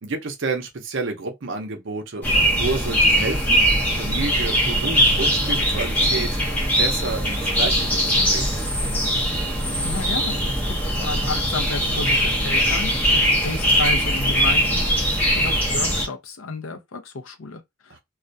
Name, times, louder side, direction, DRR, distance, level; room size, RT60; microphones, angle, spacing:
voice 1, 0.0-3.6 3.9-6.3 6.8-8.6, right 3 dB, 60° right, 0.6 m, -29 dB
sound 1, 2.2-16.0, equal, 10° left, 0.7 m, -21 dB
voice 2, 9.8-18.0, left 3 dB, 70° left, 0.5 m, -32 dB
2.4 x 2.1 x 2.6 m
head